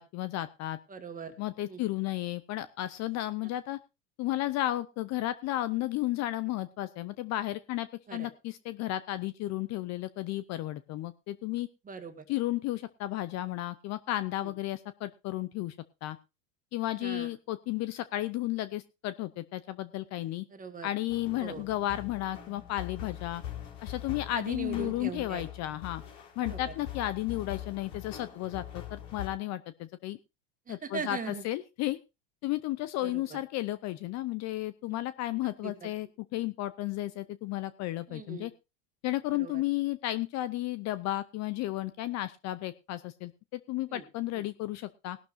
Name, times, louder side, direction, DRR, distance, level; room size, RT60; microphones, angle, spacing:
voice 1, 0.0-0.8 1.4-3.8 4.2-11.7 12.3-16.2 16.7-20.5 20.8-23.4 23.8-26.0 26.4-30.2 30.7-32.0 32.4-38.5 39.0-45.2, left 15 dB, 40° left, 15 dB, 0.7 m, -33 dB
voice 2, 0.9-1.4 1.7-1.8 8.1-8.3 11.9-12.3 14.4-14.5 17.0-17.3 20.5-20.9 21.4-21.6 24.3-25.4 26.4-26.6 30.7-31.4 33.0-33.4 34.9-35.0 35.4-35.9 38.1-38.5 39.4-39.6 43.9-44.0 44.4-44.5, right 5 dB, 20° right, 7 dB, 2.0 m, -40 dB
sound 1, 21.1-29.3, left 11 dB, 60° left, 4.4 m, -43 dB
19.0 x 12.0 x 2.7 m, 0.26 s
supercardioid pair, 115°, 41 cm